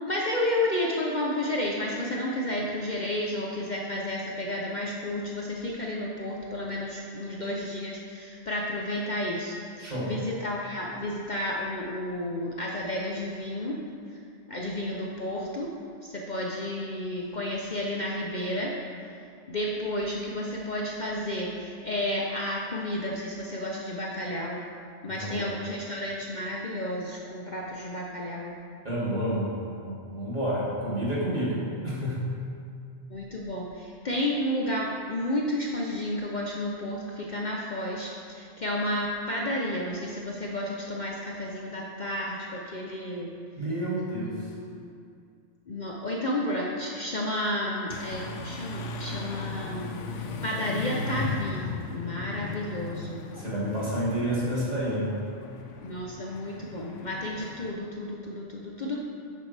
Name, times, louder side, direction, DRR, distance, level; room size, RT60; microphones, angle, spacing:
voice 1, 0.0-13.8 14.5-15.7 16.0-18.7 19.0-19.1 19.5-24.6 25.0-28.5 33.1-43.3 44.2-44.8 45.7-53.3 55.8-59.0, left 1 dB, 45° left, -2 dB, 0.8 m, -32 dB
voice 2, 9.8-10.1 25.1-25.4 28.8-32.2 43.6-44.5 53.3-55.2, right 1 dB, 35° right, -8 dB, 2.9 m, -29 dB
sound 1, 47.9-57.7, left 3 dB, 90° left, 1.1 m, -37 dB
11.5 x 8.6 x 3.4 m, 2.4 s
omnidirectional pair, 1.2 m